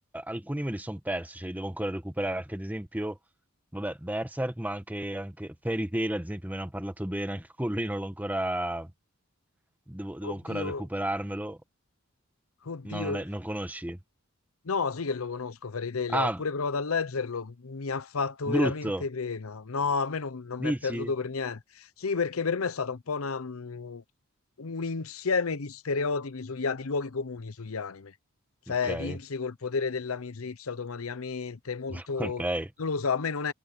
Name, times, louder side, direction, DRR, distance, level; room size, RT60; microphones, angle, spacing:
voice 1, 0.1-3.2 3.7-8.9 9.9-11.6 12.8-14.0 16.1-16.4 18.5-19.0 20.6-21.1 28.7-29.2 31.9-32.7, right 1 dB, 10° right, 1.4 m, -32 dB
voice 2, 10.2-10.9 12.6-13.2 14.6-24.0 24.6-28.1 28.7-32.4 32.8-33.5, left 4 dB, 90° left, 0.8 m, -31 dB
head